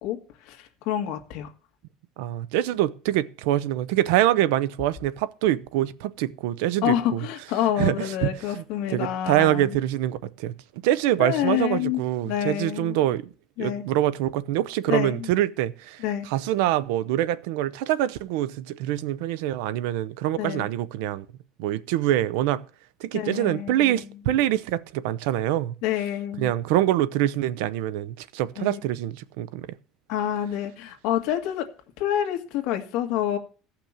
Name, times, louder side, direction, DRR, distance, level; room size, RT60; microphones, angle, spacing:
voice 1, 0.4-1.5 6.8-9.8 11.2-13.0 13.6-13.8 14.9-15.3 16.0-16.3 20.4-20.7 23.1-24.0 24.3-24.4 25.8-26.5 28.6-28.8 30.1-31.7 32.0-33.4, left 11 dB, 60° left, 1.8 m, -28 dB
voice 2, 2.2-7.2 7.8-10.5 10.8-13.3 13.6-21.3 21.6-22.6 23.0-25.7 26.4-29.7, right 13 dB, 90° right, 0.7 m, -25 dB
15.0 x 5.9 x 7.3 m
cardioid pair, 180°, 0 cm